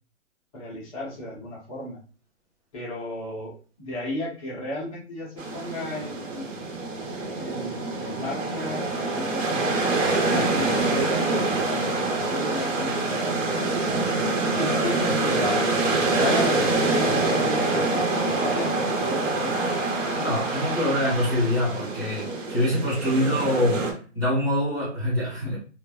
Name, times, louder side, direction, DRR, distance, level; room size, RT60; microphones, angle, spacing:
voice 1, 0.5-2.0 2.7-3.5 3.8-6.5 7.4-9.9 10.3-14.0 14.6-15.7 16.2-19.6, left 2 dB, 30° left, -5 dB, 1.0 m, -34 dB
sound 1, 5.4-23.9, right 3 dB, 85° right, 1.0 m, -25 dB
voice 2, 20.1-25.6, left 1 dB, 5° left, -14 dB, 0.8 m, -25 dB
3.2 x 2.2 x 2.3 m, 0.37 s
hypercardioid pair, 170°, 37 cm